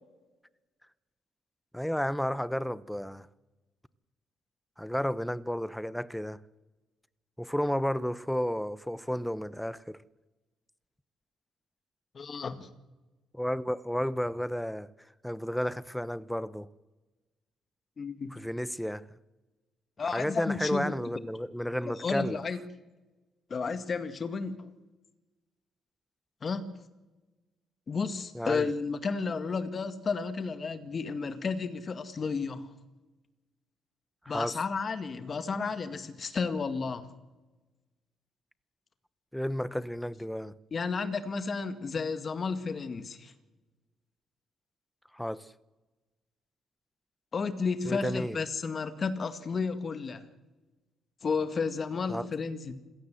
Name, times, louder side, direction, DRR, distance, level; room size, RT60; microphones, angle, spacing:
voice 1, 1.7-3.3 4.8-6.4 7.4-10.0 13.3-14.9 15.2-16.7 18.3-19.1 20.1-22.4 28.3-28.7 34.2-34.6 39.3-40.5 45.1-45.5 47.8-48.4 52.1-52.3, equal, 5° left, 0.9 m, -32 dB
voice 2, 12.1-12.7 18.0-18.3 20.0-20.9 21.8-22.6 23.5-24.7 26.4-26.7 27.9-32.6 34.3-37.1 40.7-43.3 47.3-50.2 51.2-52.7, left 4 dB, 40° left, 2.0 m, -32 dB
27.0 x 17.0 x 7.9 m
cardioid pair, 90°, 0 cm